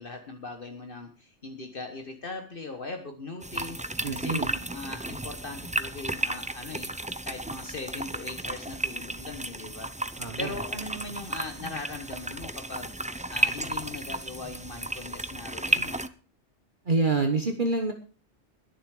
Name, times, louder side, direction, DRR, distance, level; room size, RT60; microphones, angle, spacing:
voice 1, 0.0-6.9 7.2-10.1 10.4-12.9 13.3-16.0, left 3 dB, 50° left, 5 dB, 1.6 m, -40 dB
sound 1, 3.4-16.1, right 1 dB, 10° right, 0.4 m, -33 dB
voice 2, 4.0-4.5 10.2-10.5 16.8-17.9, right 3 dB, 45° right, 5 dB, 1.5 m, -26 dB
21.0 x 7.3 x 4.9 m, 0.36 s
omnidirectional pair, 1.2 m